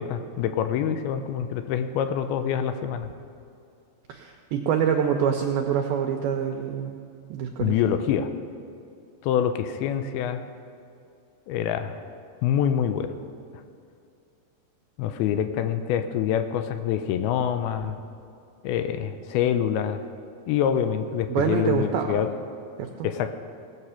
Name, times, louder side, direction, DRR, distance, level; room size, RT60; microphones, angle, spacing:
voice 1, 0.0-3.1 7.6-8.3 9.2-10.4 11.5-12.0 12.4-13.1 15.0-18.0 18.6-20.0 20.5-22.3 23.0-23.3, left 9 dB, 80° left, 9 dB, 2.2 m, -25 dB
voice 2, 4.1-7.0 7.3-7.9 21.3-22.2 23.0-23.1, right 8 dB, 85° right, 4 dB, 2.2 m, -26 dB
18.0 x 7.9 x 5.6 m, 2.5 s
omnidirectional pair, 5.0 m